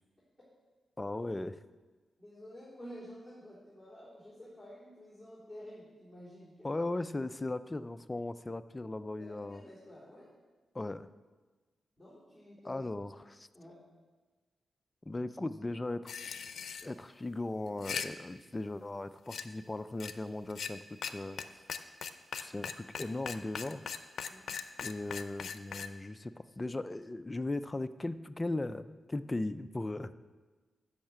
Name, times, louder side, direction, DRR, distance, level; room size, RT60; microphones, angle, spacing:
voice 1, 1.0-1.6 6.6-9.6 10.7-11.1 12.6-13.5 15.1-16.1 16.8-21.4 22.4-23.8 24.8-30.1, left 2 dB, 15° left, 12 dB, 0.3 m, -38 dB
voice 2, 2.2-6.8 9.2-10.3 12.0-12.9 13.5-13.9 24.3-24.4, equal, 10° right, -10 dB, 3.4 m, -51 dB
sound 1, 16.1-16.9 17.7-18.1 19.3-19.4 20.0-20.1 20.5-20.7 21.0-21.1 21.4-21.5 21.7-25.9, left 7 dB, 75° left, 0.5 m, -39 dB
10.5 x 6.5 x 7.5 m, 1.3 s
wide cardioid pair, 160°, 0 cm